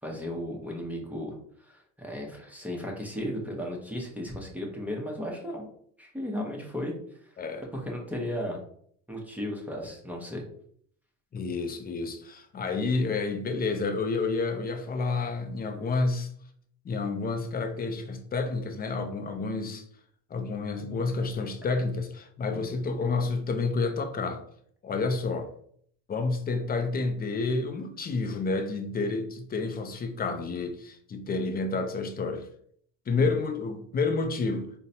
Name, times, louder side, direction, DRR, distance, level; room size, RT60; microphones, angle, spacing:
voice 1, 0.0-5.7 6.0-6.9 7.7-8.6 9.1-10.4 22.5-22.7 33.2-33.4, left 1 dB, 5° right, 0.8 m, -35 dB
voice 2, 11.3-16.3 16.8-19.8 20.3-24.4 24.8-25.5 26.1-32.5 33.1-34.7, left 3 dB, 25° left, 0.4 m, -29 dB
3.8 x 2.2 x 2.7 m
supercardioid pair, 90°, 42 cm